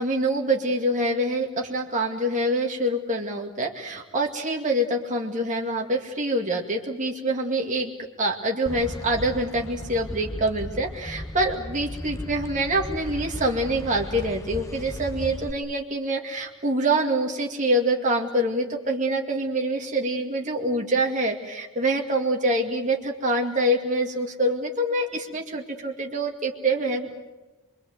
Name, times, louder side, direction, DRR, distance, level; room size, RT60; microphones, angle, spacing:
voice 1, 0.0-7.9 8.2-27.1, right 1 dB, 35° right, 0 dB, 2.3 m, -25 dB
sound 1, 8.7-15.5, left 1 dB, 15° left, 0.9 m, -36 dB
25.5 x 23.0 x 8.0 m, 1.1 s
head